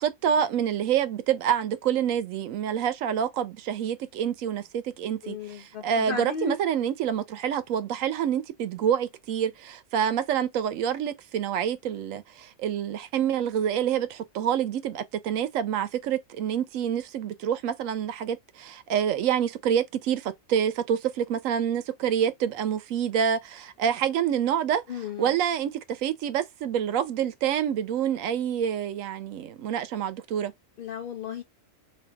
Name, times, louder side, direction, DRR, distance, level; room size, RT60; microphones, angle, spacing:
voice 1, 0.0-24.8 25.2-30.5, right 9 dB, 75° right, 1.0 m, -27 dB
voice 2, 5.2-6.6 24.9-25.3 30.8-31.4, left 6 dB, 65° left, 0.5 m, -34 dB
3.4 x 2.7 x 3.3 m
omnidirectional pair, 1.4 m